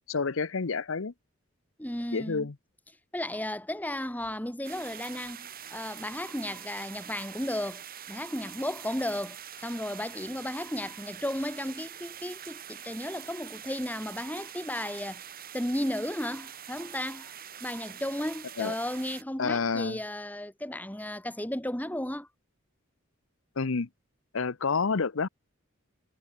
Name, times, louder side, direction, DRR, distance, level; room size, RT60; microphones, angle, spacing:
voice 1, 0.1-1.1 2.1-2.5 18.6-18.7 19.4-20.0 23.6-23.9 24.3-25.3, left 4 dB, 65° left, 0.8 m, -29 dB
voice 2, 1.8-2.5 3.1-15.2 15.5-17.3 17.6-22.3, left 1 dB, 10° left, 3.3 m, -34 dB
sound 1, 4.6-19.2, right 9 dB, 45° right, 5.5 m, -45 dB
head